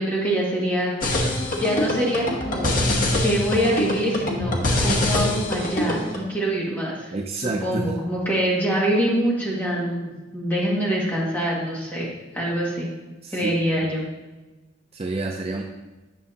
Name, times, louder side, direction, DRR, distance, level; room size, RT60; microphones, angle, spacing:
voice 1, 0.0-2.8 3.2-12.9 13.3-14.1, equal, 10° left, -6 dB, 1.8 m, -25 dB
sound 1, 1.0-6.2, left 1 dB, 45° left, 0.9 m, -24 dB
voice 2, 7.1-7.9 13.2-13.5 13.8-13.9 14.9-15.6, right 3 dB, 30° right, 2 dB, 0.4 m, -29 dB
9.0 x 5.9 x 2.8 m, 1.2 s
head